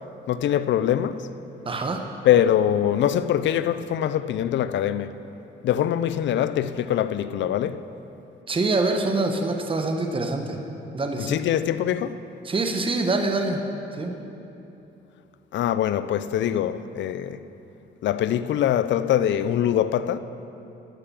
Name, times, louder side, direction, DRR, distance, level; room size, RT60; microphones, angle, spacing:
voice 1, 0.3-1.2 2.3-5.1 5.6-7.8 11.3-12.2 15.5-17.4 18.0-20.2, left 10 dB, 65° left, 0.5 m, -23 dB
voice 2, 1.6-2.0 8.5-10.6 10.9-11.4 12.4-13.6 13.9-14.1, right 2 dB, 25° right, 1.0 m, -25 dB
12.5 x 6.7 x 7.2 m
cardioid pair, 90°, 20 cm